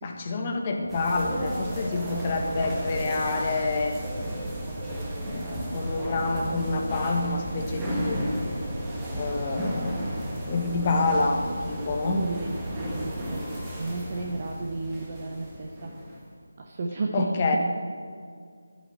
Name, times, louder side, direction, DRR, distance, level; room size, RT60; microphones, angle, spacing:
voice 1, 0.0-4.0 5.2-8.2 9.1-12.2 17.1-17.6, left 3 dB, 20° left, 2 dB, 1.3 m, -28 dB
sound 1, 0.9-16.2, equal, 10° right, 1.6 m, -33 dB
voice 2, 12.0-13.4 13.8-15.9 16.6-17.3, right 3 dB, 30° right, 1 dB, 0.9 m, -33 dB
12.0 x 9.4 x 7.6 m, 2.1 s
figure-of-eight pair, 160°, 0 cm